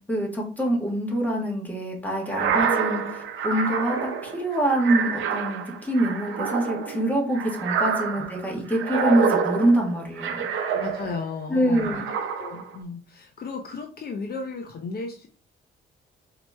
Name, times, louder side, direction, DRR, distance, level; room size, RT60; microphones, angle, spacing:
voice 1, 0.1-10.3 11.5-12.1, right 1 dB, 10° left, -1 dB, 1.6 m, -25 dB
sound 1, 2.2-11.3 11.7-12.8, right 6 dB, 80° right, 0.7 m, -28 dB
voice 2, 10.7-12.0 12.3-15.3, left 4 dB, 50° left, 3 dB, 0.7 m, -35 dB
4.1 x 2.9 x 3.4 m, 0.43 s
cardioid pair, 90°, 20 cm